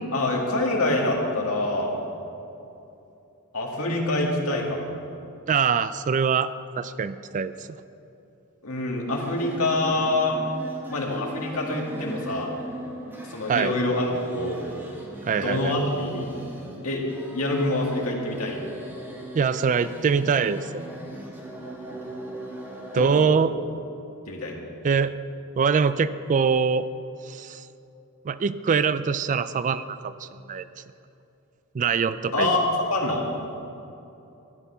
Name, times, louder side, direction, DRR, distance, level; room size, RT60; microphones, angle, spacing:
voice 1, 0.1-2.0 3.5-4.9 8.6-10.4 10.9-12.5 13.3-14.6 15.3-16.3 16.8-17.0 17.3-18.6 23.0-23.4 24.3-24.6 32.3-33.2, left 2 dB, 70° left, -1 dB, 2.3 m, -26 dB
voice 2, 5.5-6.5 6.8-7.7 13.5-13.7 15.2-15.8 19.3-20.9 22.9-23.5 24.8-25.1 25.6-26.9 27.2-27.7 28.2-30.7 31.7-32.5, right 6 dB, 35° right, 14 dB, 0.3 m, -23 dB
sound 1, 9.1-23.1, right 1 dB, 10° right, 1.7 m, -39 dB
14.0 x 10.0 x 5.7 m, 2.8 s
head